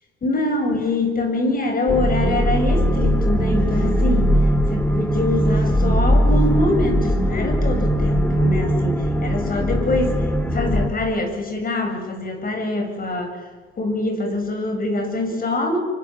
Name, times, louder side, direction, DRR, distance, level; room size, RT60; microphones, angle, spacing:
voice 1, 0.2-4.4 4.7-10.3 10.5-13.4 13.8-15.8, left 2 dB, 45° left, 5 dB, 7.7 m, -24 dB
sound 1, 1.9-10.9, equal, 10° left, 3.5 m, -19 dB
27.0 x 24.5 x 7.5 m, 1.4 s
cardioid pair, 90°, 20 cm